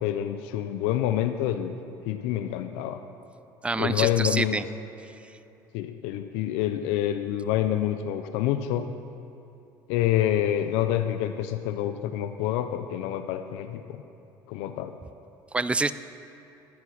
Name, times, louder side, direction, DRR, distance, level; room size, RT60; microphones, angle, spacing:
voice 1, 0.0-1.7 2.0-3.0 3.8-4.6 5.7-8.9 9.9-14.0 14.5-15.0, left 11 dB, 75° left, 9 dB, 0.5 m, -27 dB
voice 2, 3.6-4.6 15.5-15.9, right 3 dB, 10° right, 14 dB, 0.4 m, -26 dB
10.5 x 8.4 x 5.9 m, 2.9 s
supercardioid pair, 80°, 10 cm